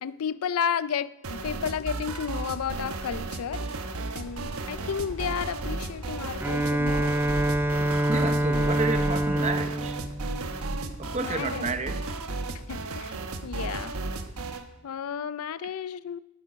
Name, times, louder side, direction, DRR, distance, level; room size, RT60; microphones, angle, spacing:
voice 1, 0.0-3.7 4.1-7.1 11.2-11.7 12.7-13.2 13.4-13.9 14.8-16.2, left 7 dB, 85° left, 17 dB, 0.4 m, -32 dB
sound 1, 1.2-14.7, right 3 dB, 90° right, 1.1 m, -34 dB
sound 2, 4.1-9.4, left 1 dB, 70° left, 3.4 m, -42 dB
Bowed string instrument, 6.4-11.2, right 1 dB, 10° right, 0.4 m, -26 dB
voice 2, 7.8-10.0 11.0-12.1, right 3 dB, 30° right, 10 dB, 0.7 m, -31 dB
18.0 x 7.2 x 5.1 m, 0.88 s
head